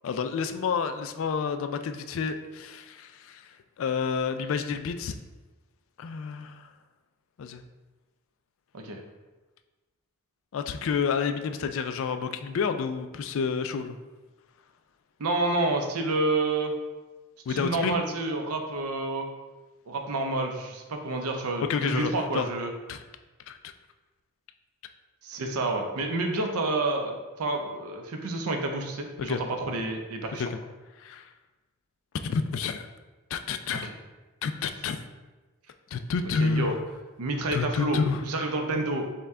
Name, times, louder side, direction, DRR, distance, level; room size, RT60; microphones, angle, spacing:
voice 1, 0.0-5.2 6.0-6.7 7.4-7.6 10.5-14.0 17.5-18.0 21.6-22.5 22.9-23.0 23.5-23.6 29.2-29.4 30.4-30.5 31.0-31.3 32.2-32.9 33.3-33.9 34.4-35.0 35.9-36.7 37.5-38.2, left 5 dB, 60° left, 9 dB, 0.3 m, -29 dB
voice 2, 15.2-16.7 17.5-19.3 19.9-22.7 25.2-30.5 33.8-33.9 36.4-36.7 37.2-39.0, right 2 dB, 85° right, 3 dB, 0.6 m, -29 dB
5.5 x 2.2 x 3.6 m, 1.2 s
head